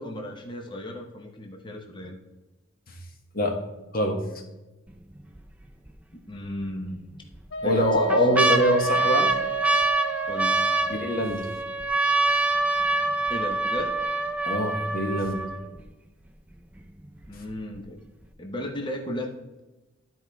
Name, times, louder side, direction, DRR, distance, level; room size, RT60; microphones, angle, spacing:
voice 1, 0.0-2.2 6.3-7.0 7.6-8.5 10.3-10.6 13.3-14.0 17.3-18.0 18.4-19.3, left 1 dB, 25° left, 3 dB, 0.8 m, -35 dB
sound 1, 4.9-5.4 5.9-6.0 6.9-7.4 7.8-15.8 16.5-16.6 16.8-17.3 17.7-17.8, right 2 dB, 5° right, 0.4 m, -25 dB
Wind instrument woodwind instrument, 7.5-11.1, right 6 dB, 80° left, 1.0 m, -32 dB
voice 2, 7.6-9.3 10.9-11.5 14.5-15.4, equal, 45° left, 3 dB, 1.3 m, -24 dB
12.5 x 4.6 x 3.4 m, 1.1 s
head